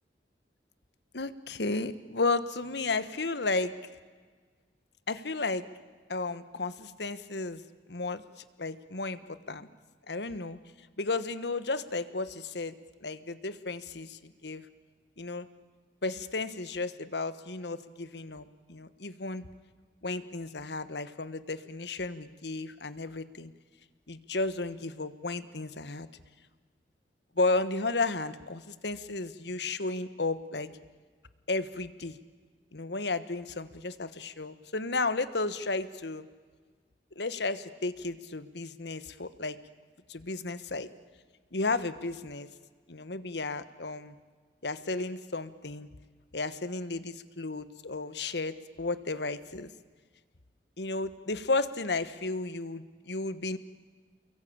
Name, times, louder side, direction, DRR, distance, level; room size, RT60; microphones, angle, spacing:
voice 1, 1.1-3.7 5.1-5.6 6.1-7.6 7.9-9.7 10.1-10.6 11.0-12.7 13.0-14.7 15.2-15.5 16.0-19.5 20.0-23.5 24.1-26.1 27.4-30.7 31.5-32.2 32.7-36.2 37.1-39.6 40.1-40.9 41.5-42.5 42.9-44.1 44.6-45.9 46.3-49.7 50.8-53.6, left 3 dB, 75° left, 13 dB, 1.3 m, -33 dB
29.5 x 22.5 x 8.8 m, 1.5 s
head